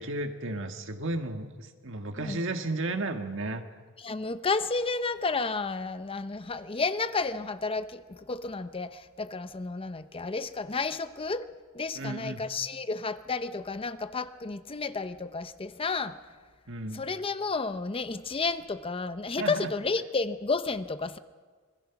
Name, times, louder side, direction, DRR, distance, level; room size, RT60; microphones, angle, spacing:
voice 1, 0.0-3.6 11.9-12.4 16.7-17.0 19.4-19.7, right 2 dB, 65° right, 1.7 m, -33 dB
voice 2, 2.2-2.5 4.0-11.5 11.7-16.2 16.9-21.2, left 4 dB, 25° left, 0.7 m, -31 dB
26.0 x 21.5 x 5.9 m
head